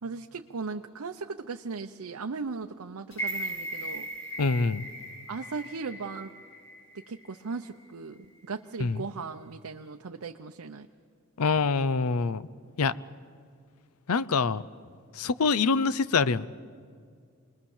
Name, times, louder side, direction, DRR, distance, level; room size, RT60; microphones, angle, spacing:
voice 1, 0.0-4.1 5.3-6.3 6.9-10.9, right 4 dB, 85° right, 5 dB, 0.7 m, -37 dB
sound 1, 3.1-7.2 7.6-7.7, right 1 dB, 60° left, 6.3 m, -38 dB
voice 2, 4.4-4.9 8.8-9.0 11.4-12.4 12.8-12.9 14.1-14.6 15.1-16.5, left 4 dB, 85° left, 17 dB, 0.6 m, -25 dB
26.5 x 21.0 x 7.2 m, 2.1 s
head